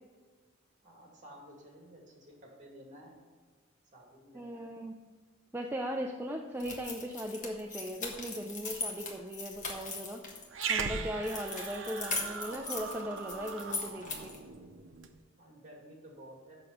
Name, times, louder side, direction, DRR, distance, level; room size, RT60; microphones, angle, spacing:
voice 1, 0.8-3.2 3.9-4.7 15.4-16.6, equal, 40° right, -1 dB, 2.3 m, -53 dB
voice 2, 4.3-5.0 5.5-10.2 10.7-14.3, equal, 10° right, 2 dB, 0.4 m, -38 dB
sound 1, 6.6-10.7 11.2-14.4, left 4 dB, 40° left, 1.4 m, -40 dB
Growling, 10.5-15.1, right 5 dB, 75° right, 0.7 m, -39 dB
6.8 x 6.2 x 5.8 m, 1.5 s
head